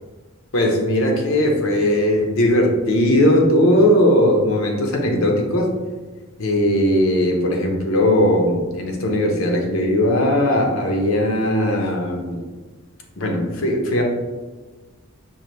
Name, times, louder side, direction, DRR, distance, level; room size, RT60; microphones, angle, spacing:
voice 1, 0.5-5.7 6.4-12.4 13.2-14.0, left 1 dB, 75° left, 2 dB, 0.8 m, -18 dB
5.5 x 2.6 x 3.2 m, 1.3 s
head